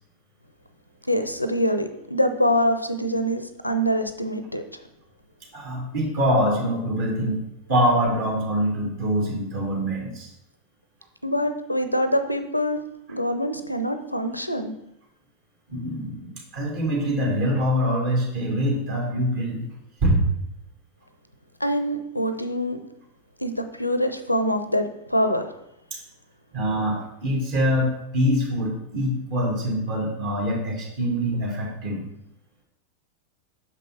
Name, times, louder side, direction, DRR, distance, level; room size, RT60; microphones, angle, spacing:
voice 1, 1.0-4.8 11.2-12.8 13.1-14.7 21.6-22.8 23.4-25.5, equal, 85° left, 9 dB, 0.5 m, -25 dB
voice 2, 5.5-7.4 7.7-10.3 15.7-19.7 20.0-20.2 25.9-26.0 26.5-32.0, equal, 45° right, -2 dB, 2.3 m, -24 dB
6.4 x 5.3 x 4.1 m, 0.81 s
figure-of-eight pair, 90°, 0 cm